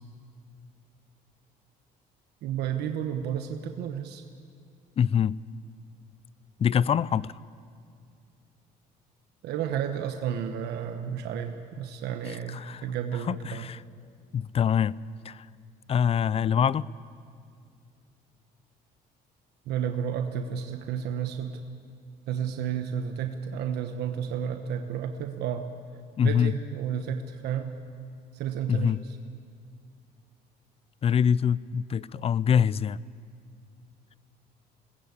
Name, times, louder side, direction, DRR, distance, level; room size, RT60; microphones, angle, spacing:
voice 1, 2.4-4.2 9.4-13.7 19.7-21.6 22.3-25.7 26.2-27.7 28.3-29.0, right 8 dB, 75° right, 6 dB, 1.2 m, -32 dB
voice 2, 5.0-5.4 6.6-7.3 12.3-12.8 13.1-13.8 14.3-15.0 15.2-15.5 15.9-16.9 26.2-26.5 28.7-29.0 31.0-33.0, left 8 dB, 35° left, 21 dB, 0.4 m, -25 dB
22.0 x 20.0 x 8.5 m, 2.3 s
cardioid pair, 110°, 17 cm